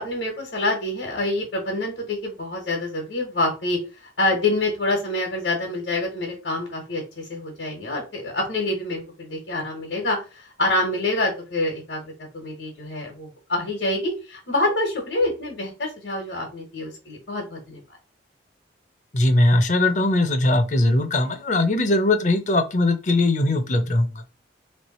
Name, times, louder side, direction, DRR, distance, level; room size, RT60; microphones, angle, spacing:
voice 1, 0.0-17.8, left 2 dB, 75° left, 1.3 m, -26 dB
voice 2, 19.1-24.2, left 2 dB, 40° left, 0.6 m, -20 dB
3.3 x 3.2 x 4.2 m
head